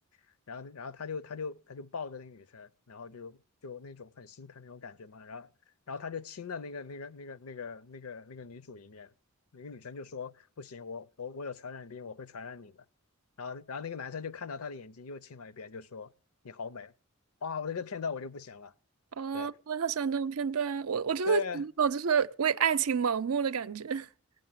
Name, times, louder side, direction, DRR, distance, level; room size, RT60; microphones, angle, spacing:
voice 1, 0.5-5.5 5.9-9.1 9.5-12.8 13.4-16.1 16.4-16.9 17.4-18.7 19.3-19.5 21.2-21.6, left 5 dB, 80° left, 0.6 m, -40 dB
voice 2, 19.2-24.1, right 6 dB, 80° right, 0.6 m, -29 dB
17.5 x 6.4 x 8.9 m
head